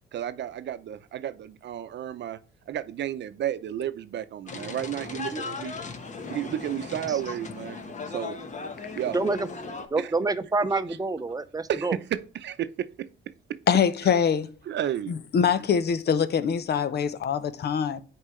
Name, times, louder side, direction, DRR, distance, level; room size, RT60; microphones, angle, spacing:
voice 1, 0.1-2.4 2.7-5.8 6.3-8.4 8.9-9.2 10.0-10.1 11.7-13.1 14.7-15.1, right 10 dB, 65° right, 0.7 m, -32 dB
sound 1, 4.5-9.9, left 4 dB, 40° left, 1.2 m, -37 dB
voice 2, 9.1-9.5 9.9-12.0, right 3 dB, 20° right, 0.7 m, -27 dB
voice 3, 13.7-14.5 15.1-18.0, left 7 dB, 55° left, 0.7 m, -24 dB
9.9 x 4.6 x 3.2 m
cardioid pair, 90°, 20 cm